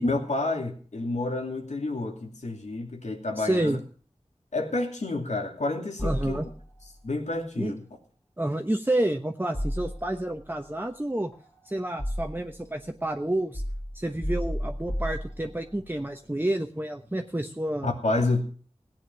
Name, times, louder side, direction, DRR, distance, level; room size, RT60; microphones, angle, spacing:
voice 1, 0.0-3.8 4.5-6.4 7.0-7.8 17.8-18.4, left 2 dB, 90° left, 3 dB, 2.7 m, -29 dB
voice 2, 3.4-3.8 6.0-6.5 7.6-7.7 8.4-11.3 11.6-13.6 13.9-17.9, right 1 dB, 20° right, 4 dB, 1.1 m, -29 dB
sound 1, 6.0-6.9 9.5-10.4 11.3-12.6 13.5-15.8, equal, 25° left, 2.4 m, -33 dB
17.5 x 9.0 x 6.1 m, 0.42 s
wide cardioid pair, 50°, 12 cm